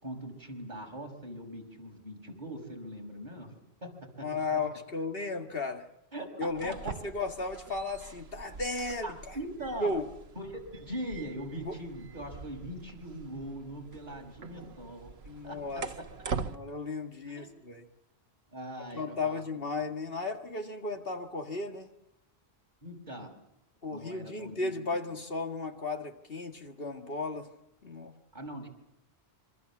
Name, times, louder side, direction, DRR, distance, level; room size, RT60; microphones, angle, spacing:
voice 1, 0.0-3.5 3.8-3.9 4.2-4.3 4.5-4.6 6.1-6.9 9.0-9.9 10.4-15.1 15.4-15.6 17.3-17.5 18.5-19.4 22.8-23.4 23.9-25.0 28.3-28.7, right 1 dB, 45° right, 2 dB, 5.8 m, -41 dB
voice 2, 4.2-5.9 6.4-9.4 9.8-10.1 11.7-11.8 15.3-15.9 16.4-17.8 18.9-21.9 23.8-27.5 27.8-28.1, left 3 dB, 65° left, 5 dB, 2.2 m, -35 dB
sound 1, 6.5-16.6, right 5 dB, 75° right, 1.4 m, -43 dB
26.5 x 25.5 x 7.3 m, 0.82 s
omnidirectional pair, 1.1 m